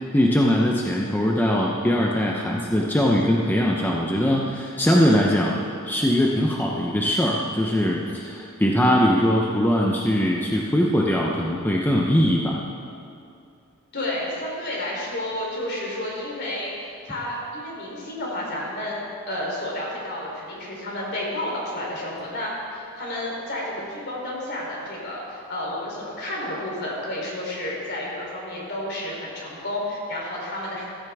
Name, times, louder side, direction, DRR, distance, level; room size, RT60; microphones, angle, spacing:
voice 1, 0.1-12.6, equal, 10° left, -2 dB, 0.8 m, -21 dB
voice 2, 13.9-19.0 19.3-30.9, left 1 dB, 50° left, -3 dB, 3.6 m, -31 dB
15.0 x 14.0 x 3.6 m, 2.5 s
head